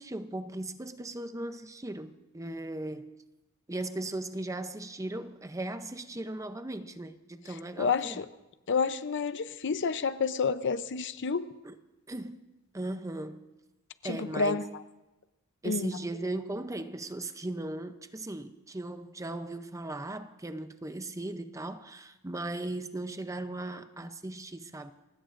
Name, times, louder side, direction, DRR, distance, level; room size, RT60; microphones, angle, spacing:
voice 1, 0.0-3.2 3.7-8.2 11.6-11.8 12.1-12.4 12.7-13.5 14.0-14.7 15.6-24.9, right 2 dB, 15° right, 0.6 m, -37 dB
voice 2, 7.8-8.3 8.7-11.5 14.0-14.6 15.6-16.0, left 5 dB, 60° left, 0.6 m, -29 dB
30.0 x 16.5 x 2.6 m
head